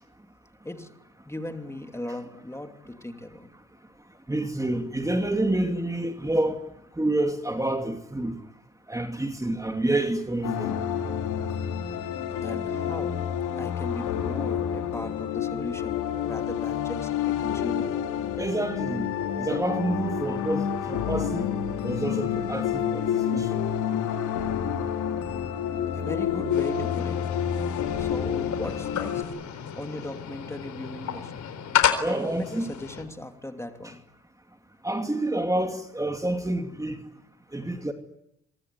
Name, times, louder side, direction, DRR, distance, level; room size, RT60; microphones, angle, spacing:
voice 1, 0.6-1.0 1.3-3.5 12.4-13.3 13.6-18.0 25.0-27.4 28.0-31.3 32.1-34.0, left 1 dB, 10° left, 2.8 m, -38 dB
voice 2, 4.3-6.6 7.0-8.4 8.9-10.8 18.4-19.1 19.4-21.5 21.8-23.0 23.3-23.6 32.0-32.7 34.8-37.0 37.5-37.9, right 1 dB, 10° right, 2.6 m, -28 dB
sound 1, 10.4-29.2, left 8 dB, 90° left, 3.4 m, -29 dB
sound 2, 26.5-33.0, left 9 dB, 70° left, 4.1 m, -31 dB
25.0 x 23.0 x 9.9 m
cardioid pair, 90°, 30 cm